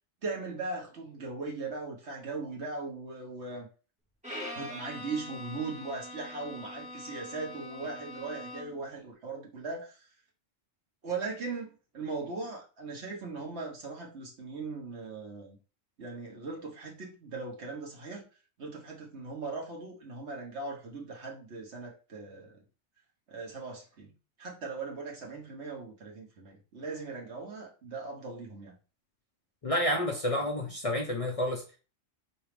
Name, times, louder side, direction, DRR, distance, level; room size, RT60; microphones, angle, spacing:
voice 1, 0.2-3.7 4.5-10.1 11.0-15.6 16.0-18.3 18.6-22.5 23.3-24.1 24.4-28.7, right 3 dB, 65° right, 1.5 m, -39 dB
Bowed string instrument, 4.2-8.9, left 1 dB, 5° right, 1.2 m, -43 dB
voice 2, 29.6-31.8, left 1 dB, 35° left, 0.6 m, -30 dB
4.6 x 3.1 x 3.3 m
omnidirectional pair, 1.2 m